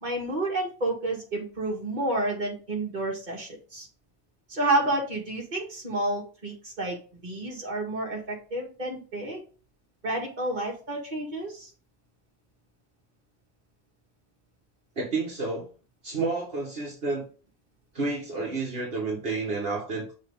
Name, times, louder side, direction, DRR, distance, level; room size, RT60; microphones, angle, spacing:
voice 1, 0.0-3.9 4.5-7.0 7.2-9.4 10.0-11.7, right 2 dB, 45° right, -2 dB, 2.2 m, -30 dB
voice 2, 15.0-15.7 16.0-17.2 17.9-20.1, right 3 dB, 65° right, -3 dB, 1.9 m, -30 dB
6.5 x 4.7 x 3.8 m, 0.36 s
omnidirectional pair, 1.1 m